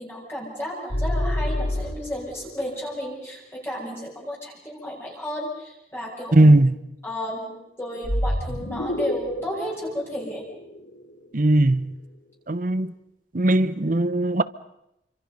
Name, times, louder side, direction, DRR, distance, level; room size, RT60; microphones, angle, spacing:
voice 1, 0.0-6.6 7.0-10.4, equal, 15° left, 6.2 m, -33 dB
sound 1, 0.9-2.5 8.0-11.1, left 1 dB, 80° left, 3.4 m, -28 dB
voice 2, 6.3-6.7 11.3-11.9 12.5-12.9 13.3-14.4, right 1 dB, 45° right, 0.8 m, -18 dB
29.0 x 25.5 x 5.5 m
head